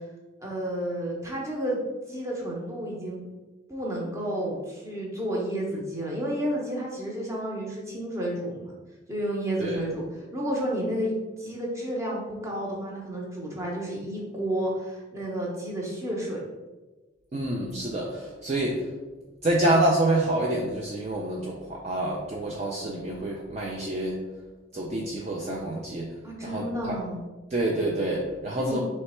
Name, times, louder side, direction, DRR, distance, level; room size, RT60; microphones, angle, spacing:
voice 1, 0.4-1.8 2.1-3.3 3.7-8.7 9.1-16.4 26.2-27.2 28.6-28.8, right 1 dB, 15° right, -3 dB, 0.8 m, -31 dB
voice 2, 17.3-18.8 19.4-24.2 24.7-26.1 26.4-27.0 27.5-28.8, right 1 dB, 35° right, -2 dB, 0.4 m, -27 dB
3.2 x 3.1 x 4.3 m, 1.2 s
head